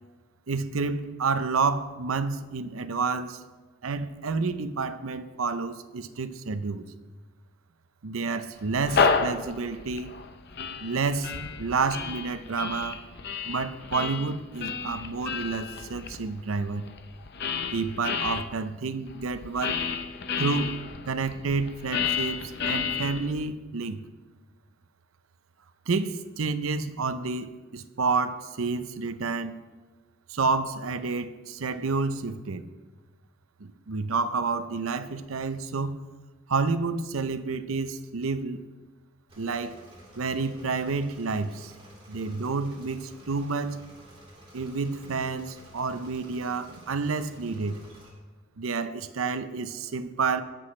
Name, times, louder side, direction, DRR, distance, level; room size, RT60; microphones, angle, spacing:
voice 1, 0.5-3.4 3.8-6.9 8.0-10.1 10.8-11.3 11.6-13.0 13.4-16.9 17.7-19.8 20.4-20.8 21.1-24.0 25.9-29.6 30.3-32.6 33.6-36.0 36.5-38.6 39.4-39.8 40.2-41.7 42.1-43.8 44.5-47.8 48.6-50.4, right 4 dB, 85° right, 12 dB, 0.7 m, -29 dB
sound 1, 8.6-18.4 19.1-23.5, left 5 dB, 55° left, 0.7 m, -31 dB
Engine / Mechanisms, 39.3-48.1, right 1 dB, 25° right, 3.7 m, -51 dB
20.0 x 7.8 x 3.2 m, 1.3 s
head